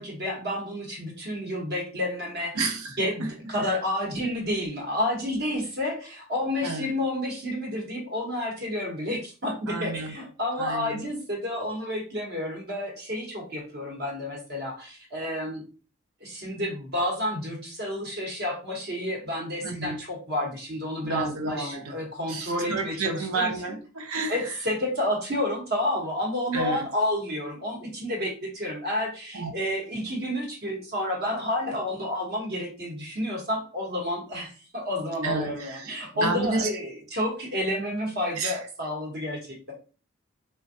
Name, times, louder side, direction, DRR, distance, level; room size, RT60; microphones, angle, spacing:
voice 1, 0.0-2.7 3.0-15.6 16.2-23.8 24.3-39.7, left 1 dB, 45° right, 0.9 m, -30 dB
voice 2, 2.6-3.3 6.6-6.9 9.7-10.1 10.6-11.0 19.6-20.0 21.0-21.9 22.3-24.5 26.5-26.8 29.3-29.5 35.2-36.7 38.4-38.6, right 3 dB, 70° right, 0.6 m, -30 dB
3.3 x 2.2 x 2.5 m
head